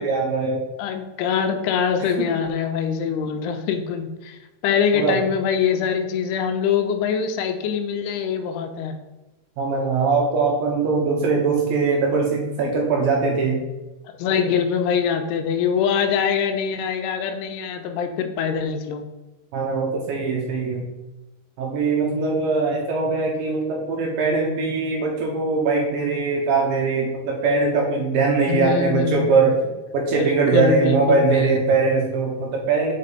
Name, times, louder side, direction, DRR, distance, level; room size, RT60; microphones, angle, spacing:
voice 1, 0.0-0.7 2.0-2.3 4.9-5.2 9.6-13.6 19.5-20.8 21.6-29.6 29.9-32.9, right 4 dB, 75° right, 0 dB, 2.2 m, -21 dB
voice 2, 0.8-8.9 14.2-19.0 28.5-29.2 30.2-30.3 30.5-31.5, left 7 dB, 85° left, 7 dB, 2.6 m, -23 dB
5.9 x 5.3 x 4.0 m, 1.1 s
omnidirectional pair, 4.7 m